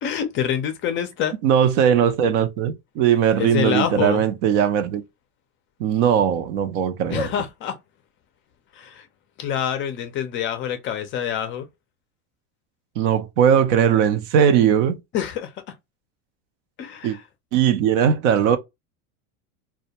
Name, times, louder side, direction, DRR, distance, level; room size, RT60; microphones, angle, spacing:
voice 1, 0.0-1.3 3.4-4.2 7.1-7.8 8.7-9.1 9.4-11.7 15.1-15.5 16.8-17.2, left 9 dB, 35° left, 0.4 m, -26 dB
voice 2, 1.4-5.0 5.8-7.3 13.0-15.0 17.0-17.2 17.5-18.6, right 8 dB, 60° right, 0.6 m, -19 dB
2.2 x 2.1 x 2.7 m
supercardioid pair, 120°, 37 cm